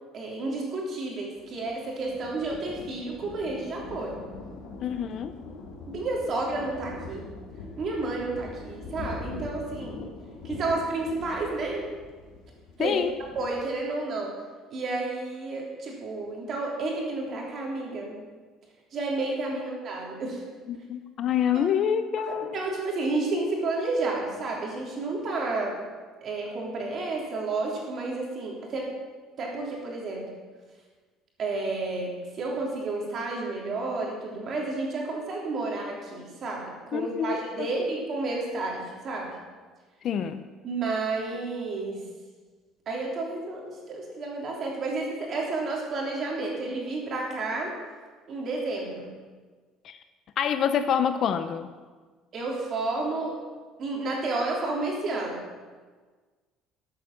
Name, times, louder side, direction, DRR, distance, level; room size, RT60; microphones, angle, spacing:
voice 1, 0.1-4.2 5.9-7.2 7.8-10.0 10.4-11.9 12.8-13.0 13.3-14.3 14.7-18.2 18.9-20.4 21.5-21.6 22.2-25.8 26.2-28.9 29.4-30.2 31.4-39.3 40.6-42.0 42.8-47.7 48.3-49.1 52.3-53.4 53.8-55.4, right 3 dB, 35° right, -2 dB, 3.2 m, -31 dB
Thunder, 1.3-13.7, left 3 dB, 75° left, 2.5 m, -42 dB
voice 2, 4.8-5.4 12.8-13.1 19.5-19.6 20.7-22.6 36.9-37.7 40.0-40.4 49.8-50.0 50.4-51.7, left 8 dB, 40° left, 10 dB, 0.6 m, -27 dB
13.0 x 8.3 x 7.2 m, 1.4 s
cardioid pair, 170°, 0 cm